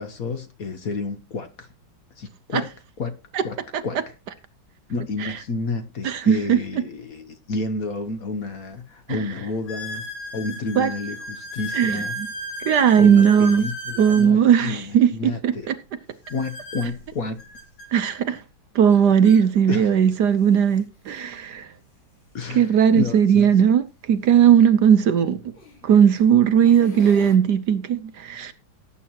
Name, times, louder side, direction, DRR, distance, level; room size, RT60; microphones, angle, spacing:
voice 1, 0.0-1.7 2.2-2.7 3.0-3.2 3.4-3.6 3.8-4.1 4.9-10.0 10.3-12.2 13.0-15.7 16.3-17.4 19.7-19.9 22.3-23.5, left 3 dB, 50° left, 1.3 m, -30 dB
voice 2, 6.0-6.6 9.1-9.2 10.8-10.9 11.7-12.0 12.6-13.6 14.0-15.1 15.4-15.7 17.9-18.4 18.7-21.7 22.5-23.8 24.1-25.4 25.8-28.5, right 8 dB, 65° right, 1.2 m, -17 dB
sound 1, 8.0-8.1 8.7-8.8 9.7-14.3 16.2-17.9 18.9-19.0 19.2-19.4 20.2-20.3 22.5-22.6 24.7-24.8 25.5-25.9 26.4-27.3, equal, 70° left, 4.2 m, -35 dB
18.0 x 8.4 x 2.9 m
omnidirectional pair, 2.2 m